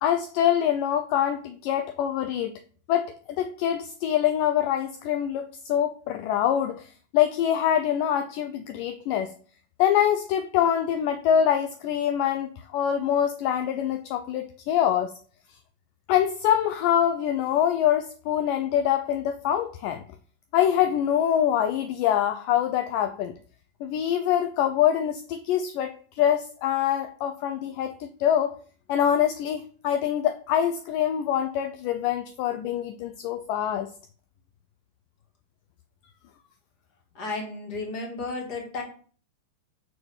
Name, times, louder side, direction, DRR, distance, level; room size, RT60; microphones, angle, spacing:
voice 1, 0.0-2.5 2.9-9.3 9.8-15.1 16.1-20.0 20.5-23.3 23.8-28.6 28.9-33.9, left 10 dB, 80° left, 9 dB, 2.0 m, -25 dB
voice 2, 37.1-38.8, left 3 dB, 30° left, 0 dB, 2.6 m, -33 dB
6.8 x 6.6 x 7.2 m, 0.44 s
omnidirectional pair, 4.5 m